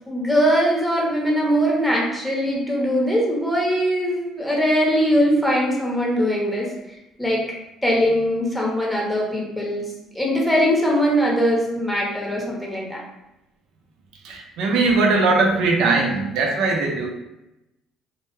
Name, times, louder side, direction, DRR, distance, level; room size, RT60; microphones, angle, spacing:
voice 1, 0.1-6.7 7.2-7.4 7.8-9.8 10.1-13.0, equal, ahead, -3 dB, 0.8 m, -21 dB
voice 2, 14.2-17.1, right 3 dB, 70° right, 1 dB, 0.5 m, -20 dB
2.2 x 2.1 x 3.0 m, 0.92 s
hypercardioid pair, 60°, 0 cm